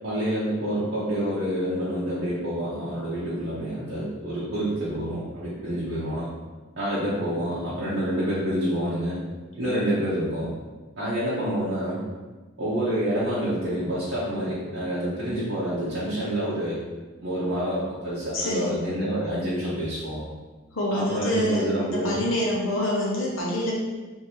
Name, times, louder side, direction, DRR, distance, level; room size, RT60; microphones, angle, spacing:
voice 1, 0.0-6.3 6.8-9.2 9.5-10.5 11.0-12.0 12.6-16.8 17.2-20.3 20.9-22.3, equal, 55° right, -10 dB, 0.8 m, -27 dB
voice 2, 18.3-18.7 20.7-23.7, left 1 dB, 75° left, -4 dB, 0.7 m, -26 dB
3.7 x 2.7 x 3.0 m, 1.3 s
head